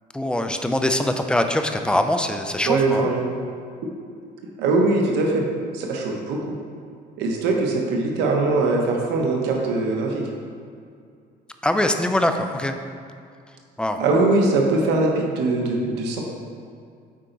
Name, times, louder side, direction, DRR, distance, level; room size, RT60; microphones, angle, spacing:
voice 1, 0.1-3.1 11.6-12.7 13.8-14.0, left 1 dB, 5° left, 6 dB, 0.5 m, -22 dB
voice 2, 2.6-3.3 4.6-5.5 5.7-6.6 7.2-10.3 14.0-16.2, right 3 dB, 85° right, 0 dB, 1.1 m, -21 dB
8.5 x 4.4 x 3.9 m, 2.3 s
cardioid pair, 110°, 17 cm